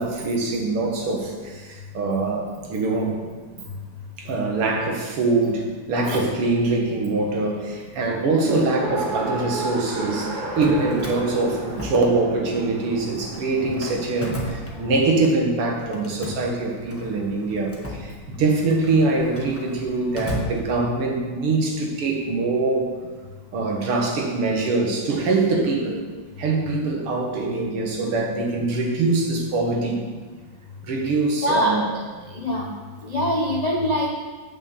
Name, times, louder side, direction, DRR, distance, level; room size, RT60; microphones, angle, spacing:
voice 1, 0.0-3.2 4.2-22.9 23.5-26.0 26.4-30.0 30.8-31.9, right 3 dB, 90° right, 1 dB, 2.5 m, -23 dB
Race car auto racing, 8.8-15.1, right 3 dB, 60° right, 3.4 m, -33 dB
Drawer open or close, 10.4-12.6 12.9-15.3 15.9-21.2, equal, 10° left, 0.6 m, -35 dB
voice 2, 31.4-31.7 32.4-32.6 33.1-34.1, equal, 60° left, -1 dB, 0.4 m, -23 dB
8.2 x 6.4 x 7.1 m, 1.4 s
omnidirectional pair, 2.4 m